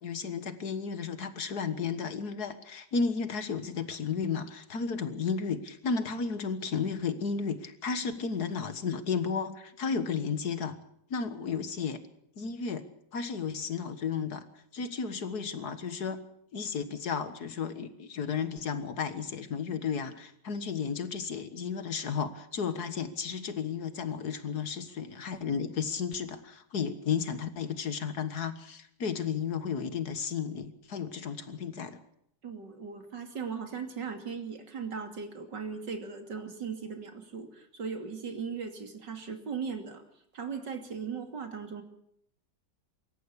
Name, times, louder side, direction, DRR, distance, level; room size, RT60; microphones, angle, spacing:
voice 1, 0.0-10.8 11.1-12.0 12.4-12.9 13.1-14.5 14.7-16.2 16.5-32.0, left 6 dB, 65° left, 11 dB, 2.0 m, -33 dB
voice 2, 32.4-40.0 40.3-41.8, right 6 dB, 85° right, 6 dB, 3.4 m, -38 dB
25.0 x 14.0 x 8.4 m, 0.72 s
omnidirectional pair, 1.8 m